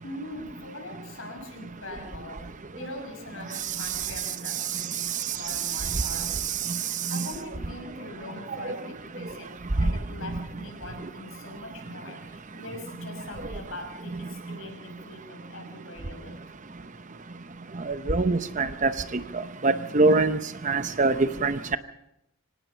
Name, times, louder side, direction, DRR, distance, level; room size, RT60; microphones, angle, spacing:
voice 1, 0.0-9.5 9.8-16.5, left 2 dB, 65° left, 2 dB, 6.4 m, -42 dB
voice 2, 17.9-19.2 19.6-20.4 20.6-21.8, right 3 dB, 35° right, 11 dB, 0.8 m, -23 dB
25.0 x 18.0 x 5.7 m, 0.81 s
head